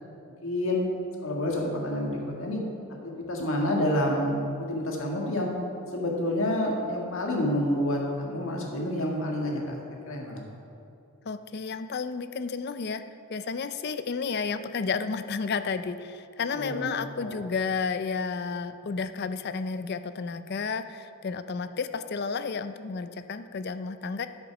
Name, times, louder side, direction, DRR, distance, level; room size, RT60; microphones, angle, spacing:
voice 1, 0.4-0.9 1.2-2.6 2.9-5.5 5.9-10.4 16.5-16.9 17.2-17.3, left 1 dB, 65° left, -1 dB, 1.8 m, -28 dB
voice 2, 11.3-13.0 13.3-24.3, left 5 dB, 45° left, 11 dB, 0.4 m, -32 dB
8.8 x 8.0 x 6.0 m, 2.8 s
head